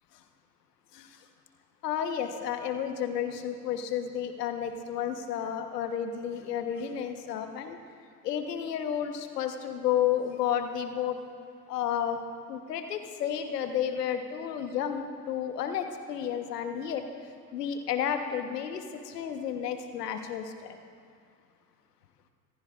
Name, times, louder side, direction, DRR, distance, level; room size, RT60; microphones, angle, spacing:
voice 1, 1.8-7.8 8.2-11.2 11.7-12.2 12.5-17.0 17.5-20.8, left 9 dB, 80° left, 6 dB, 1.3 m, -31 dB
25.5 x 15.0 x 2.5 m, 2.3 s
hypercardioid pair, 65°, 47 cm